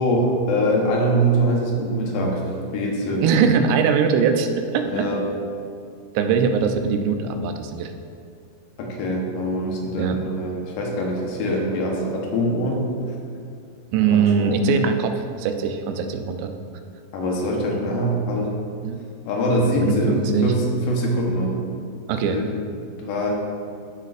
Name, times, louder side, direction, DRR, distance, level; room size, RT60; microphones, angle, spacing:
voice 1, 0.0-2.4 2.7-3.2 4.9-5.2 8.8-12.8 14.1-14.7 17.1-18.5 19.3-21.6 22.3-22.5 23.0-23.3, equal, 70° left, -1 dB, 2.4 m, -23 dB
voice 2, 3.2-5.1 6.1-7.9 10.0-10.2 13.9-16.5 18.8-19.0 19.7-20.5 22.1-22.4, right 6 dB, 90° right, 6 dB, 2.8 m, -21 dB
14.5 x 6.6 x 2.5 m, 2.4 s
omnidirectional pair, 4.7 m